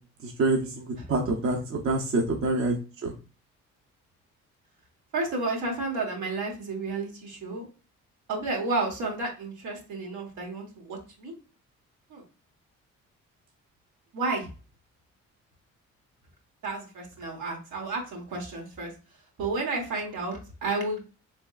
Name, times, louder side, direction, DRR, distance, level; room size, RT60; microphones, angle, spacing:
voice 1, 0.2-2.8 3.0-3.1, right 2 dB, 50° right, 1 dB, 0.7 m, -26 dB
voice 2, 5.1-7.7 8.3-11.3 12.1-12.2 14.1-14.5 16.6-18.9 19.4-21.1, right 3 dB, 80° right, 0 dB, 1.2 m, -31 dB
3.4 x 3.1 x 2.3 m, 0.34 s
cardioid pair, 90°, 30 cm